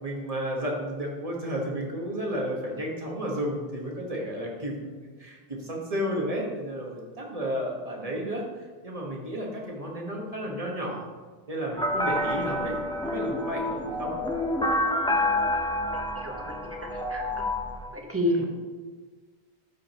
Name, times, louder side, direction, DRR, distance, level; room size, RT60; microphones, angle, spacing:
voice 1, 0.0-11.1 11.5-12.8 13.0-14.1 18.2-18.4, equal, 35° right, -1 dB, 1.5 m, -32 dB
sound 1, 11.8-17.9, left 1 dB, 5° left, 0.6 m, -28 dB
voice 2, 17.1-17.4 18.1-18.4, left 1 dB, 15° right, 0 dB, 1.0 m, -27 dB
12.0 x 5.0 x 3.0 m, 1.4 s
omnidirectional pair, 1.1 m